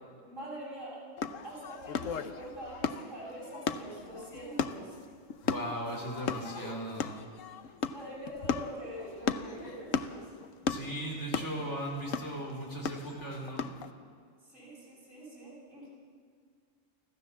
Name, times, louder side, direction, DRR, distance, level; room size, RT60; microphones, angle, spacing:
voice 1, 0.3-1.0 1.4-5.0 6.5-6.7 7.9-10.2 14.4-15.9, right 1 dB, 75° right, -7 dB, 7.6 m, -44 dB
sound 1, 1.2-13.9, left 6 dB, 85° left, 1.2 m, -36 dB
voice 2, 5.4-7.2 10.7-13.7, right 1 dB, 60° left, -2 dB, 4.8 m, -37 dB
25.5 x 15.0 x 7.2 m, 2.1 s
omnidirectional pair, 1.3 m